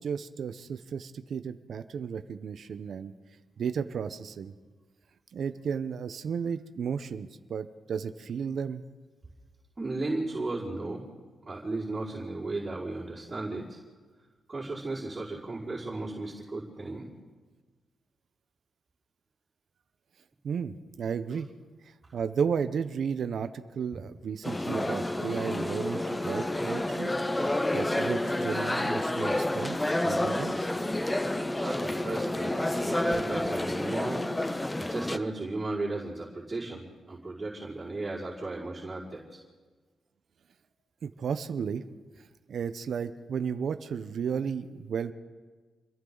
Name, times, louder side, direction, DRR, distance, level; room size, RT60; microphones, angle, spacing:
voice 1, 0.0-3.1 3.6-4.5 5.3-8.8 20.4-21.5 21.8-30.7 41.0-41.8 42.2-45.1, right 6 dB, 70° right, 9 dB, 0.9 m, -34 dB
voice 2, 9.8-11.0 11.5-13.8 14.5-17.1 31.5-34.2 34.8-39.4, right 2 dB, 30° right, -7 dB, 5.5 m, -35 dB
sound 1, 24.4-35.2, left 1 dB, 15° left, 0.9 m, -29 dB
29.0 x 22.5 x 4.1 m, 1.4 s
cardioid pair, 70°, 0 cm